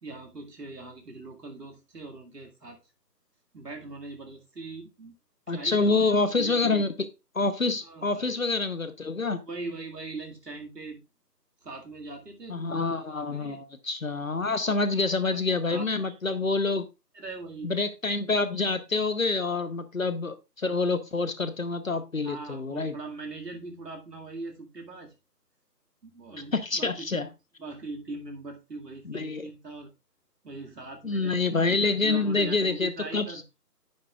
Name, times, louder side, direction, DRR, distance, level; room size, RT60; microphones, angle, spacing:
voice 1, 0.0-2.8 3.5-5.1 5.5-6.8 7.8-8.4 9.4-11.0 11.6-13.0 13.3-13.6 14.6-15.0 15.3-15.4 15.7-15.9 17.1-17.7 22.2-25.1 26.0-27.2 27.6-29.9 30.4-31.4 32.0-33.4, right 3 dB, 70° right, 2.2 m, -41 dB
voice 2, 5.5-6.9 7.3-9.4 12.5-16.8 17.6-23.0 26.5-27.3 29.0-29.5 31.0-33.3, left 3 dB, 55° left, 0.9 m, -27 dB
9.7 x 9.2 x 2.4 m
figure-of-eight pair, 165°, 50 cm